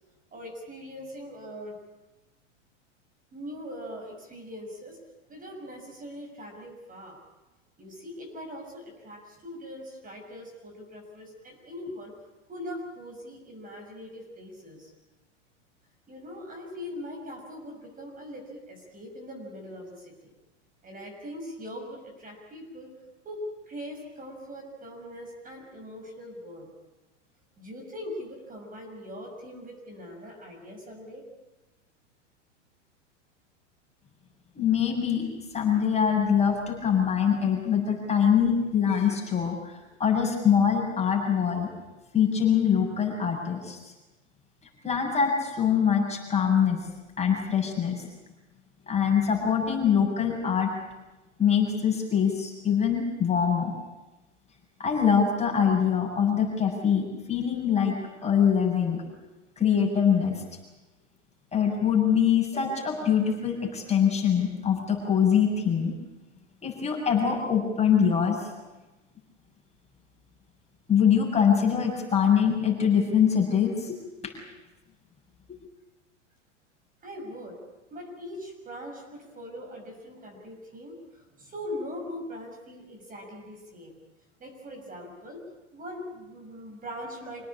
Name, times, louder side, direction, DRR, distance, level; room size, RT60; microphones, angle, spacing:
voice 1, 0.3-1.8 3.3-5.0 5.3-7.2 7.8-12.1 12.5-14.9 16.1-20.3 20.8-22.9 23.2-26.7 27.6-31.3 77.0-77.6 77.9-84.0 84.4-85.4 85.7-87.5, equal, 20° right, 1 dB, 6.7 m, -41 dB
voice 2, 34.6-35.3 35.5-41.7 42.1-43.8 44.8-46.8 47.2-48.0 48.9-50.7 51.4-53.7 54.8-57.9 58.2-59.0 59.6-60.4 61.5-66.0 66.6-68.5 70.9-74.0 74.2-74.3, left 7 dB, 20° left, 0 dB, 7.4 m, -24 dB
27.0 x 18.0 x 8.7 m, 1.1 s
hypercardioid pair, 100°, 37 cm